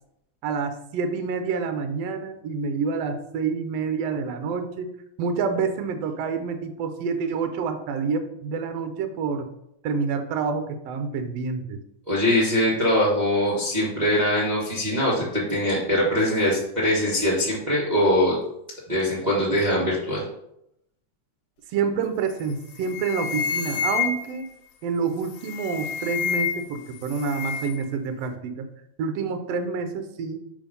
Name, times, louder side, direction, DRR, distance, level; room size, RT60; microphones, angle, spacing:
voice 1, 0.4-4.9 5.2-9.5 9.8-11.8 21.7-24.5 24.8-28.7 29.0-30.4, right 5 dB, 75° right, 7 dB, 1.5 m, -28 dB
voice 2, 12.1-18.4 18.9-20.2, left 1 dB, 55° right, -5 dB, 0.4 m, -22 dB
sound 1, 22.3-22.5 22.8-24.5 25.3-26.8 27.0-27.8, left 7 dB, 90° left, 2.1 m, -29 dB
5.5 x 4.5 x 5.2 m, 0.78 s
omnidirectional pair, 3.6 m